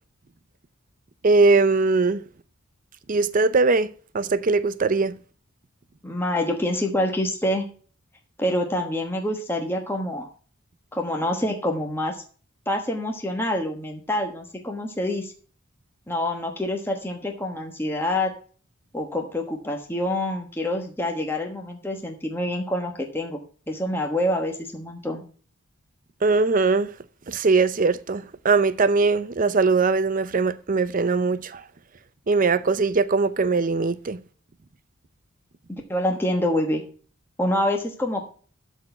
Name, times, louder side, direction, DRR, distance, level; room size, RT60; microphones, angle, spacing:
voice 1, 1.2-2.2 3.1-3.9 4.1-5.1 26.2-26.9 27.3-31.4 32.3-34.2, right 4 dB, 40° right, 0.5 m, -20 dB
voice 2, 6.0-7.6 8.4-10.3 10.9-12.1 12.7-15.3 16.1-18.3 18.9-23.4 23.7-25.2 35.7-36.8 37.4-38.3, left 1 dB, 10° left, 1.2 m, -26 dB
12.5 x 4.2 x 5.8 m
head